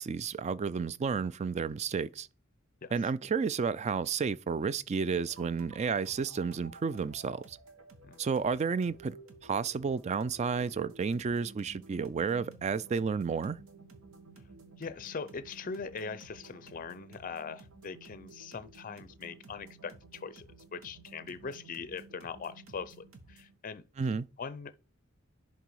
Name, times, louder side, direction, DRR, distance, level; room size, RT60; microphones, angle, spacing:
voice 1, 0.0-2.3 2.9-7.6 8.2-9.2 9.4-13.6 24.0-24.3, right 5 dB, 35° right, 0.3 m, -31 dB
sound 1, 5.1-23.6, right 3 dB, 90° right, 1.3 m, -54 dB
voice 2, 14.8-23.8 24.4-24.8, left 5 dB, 40° left, 0.5 m, -41 dB
10.5 x 3.7 x 4.7 m
head